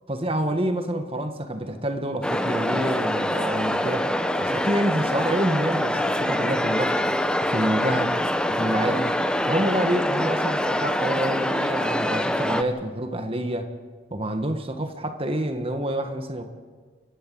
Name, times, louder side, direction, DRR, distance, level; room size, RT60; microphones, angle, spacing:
voice 1, 0.1-4.1 4.4-7.0 7.4-8.2 8.5-9.2 9.4-13.7 14.1-16.4, right 1 dB, 30° right, 7 dB, 1.4 m, -27 dB
sound 1, 2.2-12.6, left 1 dB, 5° left, 0.8 m, -25 dB
29.5 x 12.0 x 7.6 m, 1.5 s
head